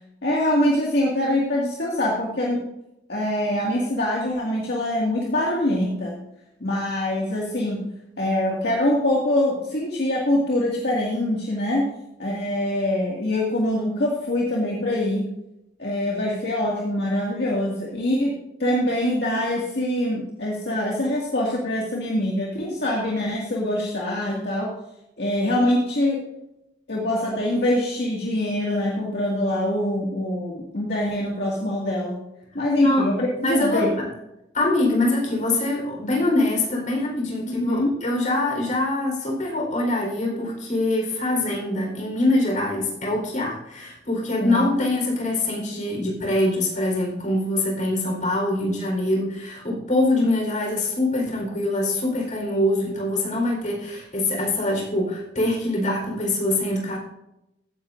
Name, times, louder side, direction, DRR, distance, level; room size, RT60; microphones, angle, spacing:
voice 1, 0.2-2.6 3.1-6.1 6.6-7.8 8.2-11.9 12.2-15.3 15.8-18.3 18.6-24.7 25.2-26.2 26.9-32.2 32.5-33.9 37.5-38.0 44.4-44.7, left 1 dB, 65° left, -3 dB, 2.1 m, -24 dB
voice 2, 33.4-33.9 34.5-57.0, left 2 dB, 45° left, 0 dB, 4.2 m, -24 dB
16.0 x 9.9 x 2.6 m, 0.86 s
head